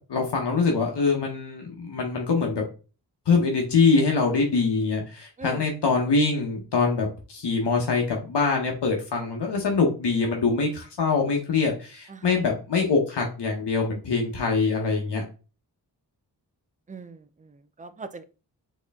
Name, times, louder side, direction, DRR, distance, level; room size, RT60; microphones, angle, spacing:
voice 1, 0.1-2.7 3.3-15.2, left 4 dB, 85° left, 1 dB, 1.0 m, -24 dB
voice 2, 16.9-18.2, right 4 dB, 20° right, 12 dB, 0.4 m, -40 dB
4.3 x 3.0 x 3.5 m, 0.34 s
wide cardioid pair, 95°, 40 cm